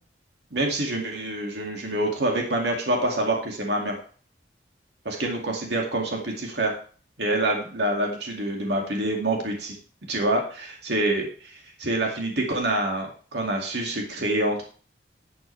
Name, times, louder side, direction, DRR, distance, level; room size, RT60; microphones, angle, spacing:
voice 1, 0.5-4.0 5.0-6.8 7.2-9.8 10.1-14.6, right 1 dB, 65° right, 0 dB, 2.4 m, -26 dB
11.5 x 8.4 x 3.4 m, 0.41 s
head